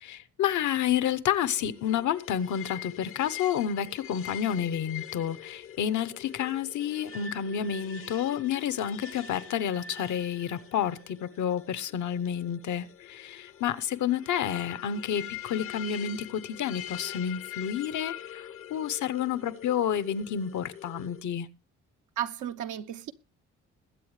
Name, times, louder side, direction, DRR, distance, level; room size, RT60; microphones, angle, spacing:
voice 1, 0.0-21.5, left 9 dB, 70° left, 1.0 m, -30 dB
sound 1, 1.4-21.2, left 10 dB, 45° left, 0.8 m, -44 dB
voice 2, 22.2-23.1, right 10 dB, 80° right, 1.0 m, -34 dB
21.5 x 7.9 x 3.2 m
cardioid pair, 90°, 30 cm